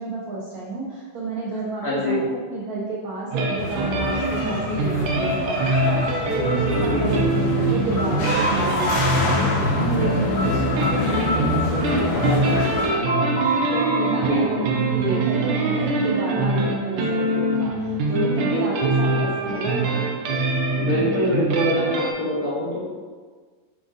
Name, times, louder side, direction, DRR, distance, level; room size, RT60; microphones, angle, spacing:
voice 1, 0.0-20.0, right 2 dB, 70° right, -6 dB, 0.8 m, -31 dB
voice 2, 1.8-2.3 6.7-7.2 12.1-12.5 14.2-14.4 18.9-19.0 20.8-22.8, left 1 dB, 55° left, -6 dB, 1.1 m, -24 dB
sound 1, 3.3-22.1, right 2 dB, 90° right, 1.6 m, -24 dB
sound 2, 3.6-12.9, left 2 dB, 70° left, 1.4 m, -26 dB
sound 3, 4.1-15.8, equal, 90° left, 2.1 m, -31 dB
4.8 x 2.5 x 3.8 m, 1.5 s
omnidirectional pair, 2.3 m